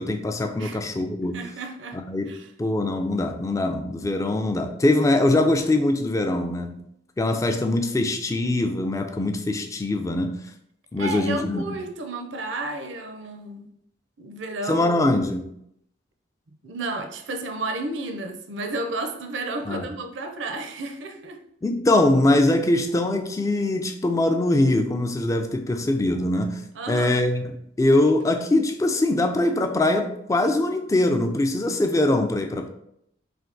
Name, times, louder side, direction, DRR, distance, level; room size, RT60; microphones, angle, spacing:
voice 1, 0.0-1.4 1.9-2.3 2.6-6.8 7.2-10.5 10.9-11.6 14.7-15.5 19.7-19.9 21.6-26.6 26.9-27.5 27.8-32.7, left 2 dB, 15° left, 0.3 m, -22 dB
voice 2, 1.3-2.0 2.3-2.5 11.0-13.7 14.2-15.2 16.6-21.4 26.7-27.2, right 2 dB, 80° right, 0.5 m, -32 dB
3.4 x 2.7 x 3.8 m
head